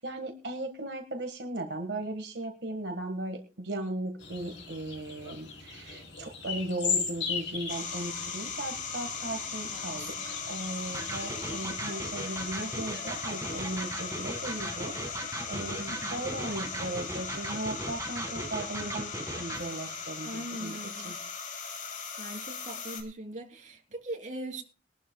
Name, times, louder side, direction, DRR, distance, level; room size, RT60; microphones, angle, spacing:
voice 1, 0.0-19.1 19.3-20.8 21.0-21.2, right 1 dB, 80° right, 4 dB, 1.6 m, -37 dB
sound 1, 4.2-11.7, left 6 dB, 85° left, 3.5 m, -37 dB
sound 2, 7.7-23.0, left 5 dB, 50° left, 2.5 m, -38 dB
voice 2, 9.7-10.3 15.9-16.2 20.2-21.1 22.2-24.6, right 1 dB, 45° right, 2 dB, 3.2 m, -41 dB
Electric guitar, 10.9-19.7, right 2 dB, 20° right, 1.8 m, -38 dB
22.0 x 12.0 x 2.3 m, 0.33 s
head